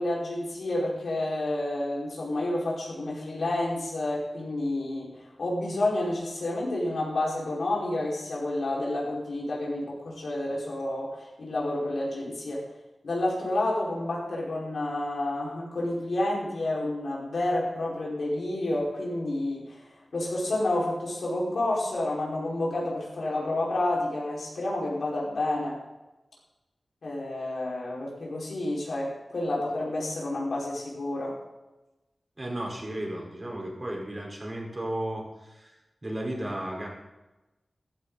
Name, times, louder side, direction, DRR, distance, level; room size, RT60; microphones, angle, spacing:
voice 1, 0.0-12.7 13.0-19.8 20.1-25.8 27.0-31.4, left 1 dB, 85° left, -4 dB, 5.1 m, -29 dB
voice 2, 32.4-35.7 36.0-36.9, right 1 dB, 35° right, -1 dB, 4.5 m, -34 dB
14.0 x 13.5 x 4.1 m, 1.0 s
wide cardioid pair, 80°, 0 cm